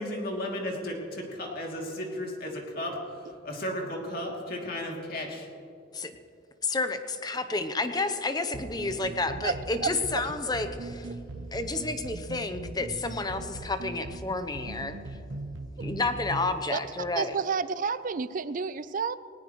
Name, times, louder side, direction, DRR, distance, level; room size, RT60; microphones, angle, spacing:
voice 1, 0.0-3.0 3.4-5.5, left 1 dB, 50° left, -1 dB, 2.8 m, -34 dB
voice 2, 6.6-11.1 11.5-15.0 15.8-17.3, left 3 dB, 20° left, 8 dB, 0.7 m, -30 dB
sound 1, 8.5-16.6, right 2 dB, 75° right, 0.8 m, -40 dB
voice 3, 17.1-19.1, right 5 dB, 45° right, 15 dB, 0.4 m, -29 dB
19.5 x 18.5 x 3.1 m, 2.5 s
head